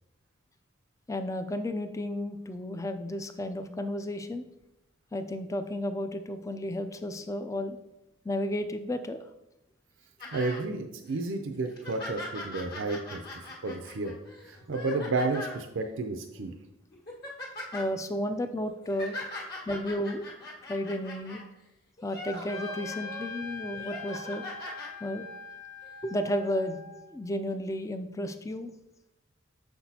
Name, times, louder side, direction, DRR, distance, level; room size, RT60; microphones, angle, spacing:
voice 1, 1.1-4.4 5.1-7.8 8.2-9.3 17.7-19.2 19.7-20.3 20.7-21.4 22.0-24.4 25.0-25.3 26.0-28.7, left 1 dB, 15° left, 9 dB, 0.3 m, -33 dB
sound 1, 10.2-10.6 11.1-11.2 11.6-15.6 16.4-16.5 16.9-17.9 18.6-21.4 22.0-23.2 23.7-24.9 25.8-25.9, left 1 dB, 50° left, 1.5 m, -41 dB
voice 2, 10.3-14.1 14.4-16.5, right 3 dB, 70° right, 5 dB, 0.5 m, -32 dB
Trumpet, 22.5-27.2, left 4 dB, 85° left, 0.7 m, -42 dB
6.5 x 6.0 x 2.7 m, 0.91 s
head